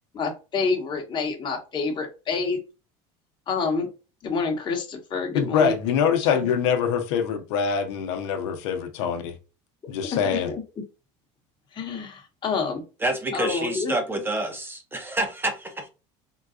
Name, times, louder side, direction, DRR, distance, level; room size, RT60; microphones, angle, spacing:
voice 1, 0.1-2.6 3.5-3.9 4.2-5.7 6.3-6.5 10.1-10.6 11.7-12.8 13.3-14.0, left 4 dB, 30° left, 1.1 m, -28 dB
voice 2, 5.3-9.4 9.9-10.5, left 7 dB, 85° left, 0.8 m, -24 dB
voice 3, 13.0-15.9, right 1 dB, 15° right, 0.8 m, -28 dB
3.8 x 2.3 x 2.5 m
supercardioid pair, 115°, 15 cm